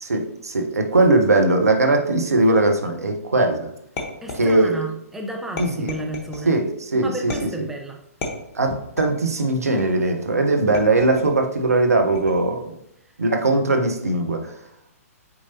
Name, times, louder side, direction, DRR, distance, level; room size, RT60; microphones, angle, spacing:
voice 1, 0.0-3.7 4.4-4.8 5.6-5.9 6.4-7.3 8.5-12.7 13.2-14.5, right 2 dB, 75° right, 4 dB, 1.0 m, -20 dB
sound 1, 4.0-4.9 5.6-6.5 7.3-7.7 8.2-9.3 9.8-10.2 10.7-11.4 12.1-12.6, left 2 dB, 25° left, 1.3 m, -33 dB
voice 2, 4.2-6.5 7.0-8.0, right 1 dB, 5° right, 2 dB, 0.5 m, -32 dB
7.8 x 4.6 x 2.9 m, 0.76 s
figure-of-eight pair, 120°, 8 cm